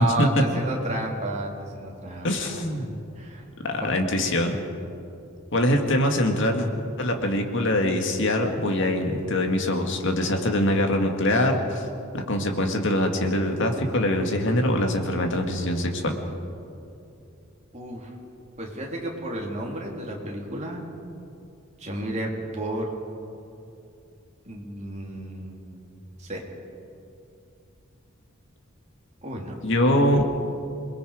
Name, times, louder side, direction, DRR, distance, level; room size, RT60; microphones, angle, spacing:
voice 1, 0.0-2.9 3.1-3.4 3.8-4.3 17.7-18.1 18.6-20.9 21.8-22.9 24.4-25.9 26.2-26.4 29.2-29.5, right 1 dB, 35° right, -2 dB, 3.4 m, -32 dB
voice 2, 2.2-2.9 3.6-4.6 5.5-6.7 7.0-11.8 12.1-16.2 29.6-30.2, left 1 dB, 60° left, 4 dB, 2.1 m, -23 dB
27.5 x 20.5 x 5.1 m, 2.7 s
head